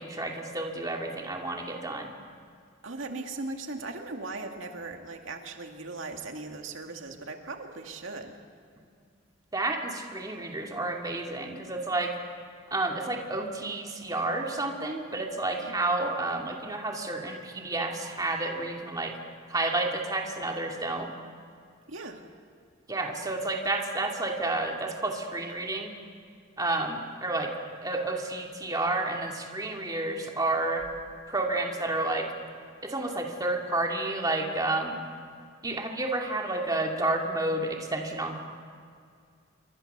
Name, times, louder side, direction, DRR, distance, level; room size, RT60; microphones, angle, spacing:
voice 1, 0.0-2.1 9.5-12.1 12.7-19.2 19.5-21.1 22.9-25.9 26.6-27.5 27.8-30.8 31.3-32.3 32.8-35.0 35.6-38.4, right 2 dB, 20° right, 1 dB, 2.3 m, -30 dB
voice 2, 2.8-8.4 21.9-22.3, right 3 dB, 80° right, 3 dB, 2.2 m, -38 dB
28.0 x 24.0 x 6.8 m, 2.2 s
head